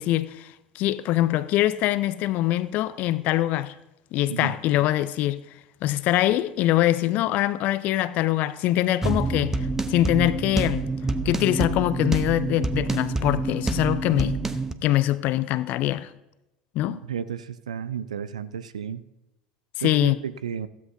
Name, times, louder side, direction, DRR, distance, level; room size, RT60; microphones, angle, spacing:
voice 1, 0.0-3.7 4.1-5.4 5.8-9.6 9.9-10.8 11.3-14.4 14.8-16.1 16.7-17.0 19.8-20.2, left 14 dB, 45° left, 0.6 m, -23 dB
sound 1, 9.0-14.7, right 3 dB, 10° right, 0.7 m, -27 dB
voice 2, 16.9-19.0 19.8-20.7, right 8 dB, 75° right, 0.5 m, -33 dB
15.0 x 13.5 x 2.7 m
figure-of-eight pair, 70°, 4 cm